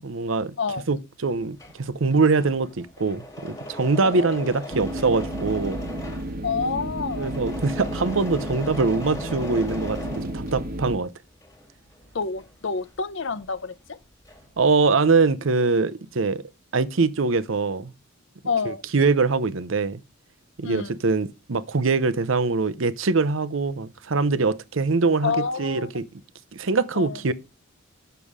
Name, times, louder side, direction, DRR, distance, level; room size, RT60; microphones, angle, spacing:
voice 1, 0.0-0.5 0.9-5.8 7.2-11.1 14.6-16.4 16.7-17.9 18.6-20.0 20.6-26.0 26.5-27.3, right 4 dB, 70° right, 0.7 m, -23 dB
Engine / Mechanisms, 1.3-10.9 11.3-13.6 13.9-14.6, left 1 dB, 15° left, 1.7 m, -39 dB
voice 2, 4.0-4.5 6.4-7.4 12.1-14.0 18.4-18.8 20.6-21.0 25.2-25.9 26.9-27.2, left 5 dB, 60° left, 0.7 m, -28 dB
sound 1, 4.7-11.0, right 1 dB, 45° right, 1.1 m, -32 dB
9.1 x 6.9 x 4.9 m
head